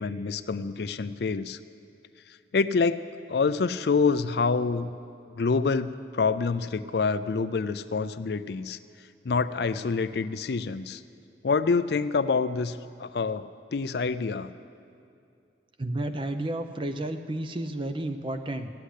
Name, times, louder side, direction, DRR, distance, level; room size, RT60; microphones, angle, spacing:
voice 1, 0.0-1.6 2.5-3.0 3.3-4.9 5.3-8.8 9.2-11.0 11.4-14.5, left 4 dB, 60° left, 13 dB, 0.4 m, -27 dB
voice 2, 15.8-18.7, right 1 dB, 30° right, 8 dB, 0.7 m, -31 dB
15.5 x 8.3 x 9.9 m, 2.5 s
head